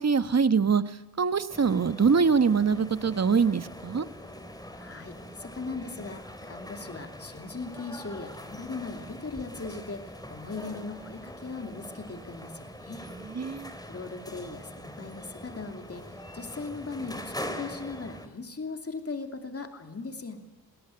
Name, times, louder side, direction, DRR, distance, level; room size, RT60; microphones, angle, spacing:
voice 1, 0.0-4.1 13.3-13.7, right 5 dB, 35° right, 13 dB, 1.3 m, -24 dB
sound 1, 1.5-18.3, left 1 dB, 10° left, 2.8 m, -43 dB
voice 2, 4.7-13.0 13.9-20.4, left 3 dB, 35° left, 6 dB, 2.8 m, -39 dB
22.0 x 18.0 x 9.3 m, 1.0 s
cardioid pair, 65°, 43 cm